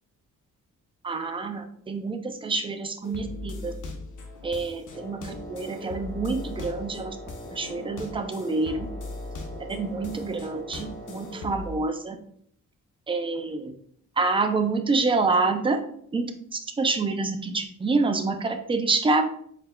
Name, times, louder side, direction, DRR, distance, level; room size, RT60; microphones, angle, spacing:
voice 1, 1.0-3.7 4.4-7.2 7.5-8.9 9.7-12.2 13.1-13.7 14.2-15.8 16.1-19.2, right 3 dB, 15° right, 6 dB, 0.4 m, -27 dB
sound 1, 3.0-11.8, left 3 dB, 70° left, 0.9 m, -39 dB
Wind instrument woodwind instrument, 4.9-11.6, right 1 dB, 10° left, 1.5 m, -43 dB
4.2 x 4.1 x 2.2 m, 0.65 s
cardioid pair, 125°, 32 cm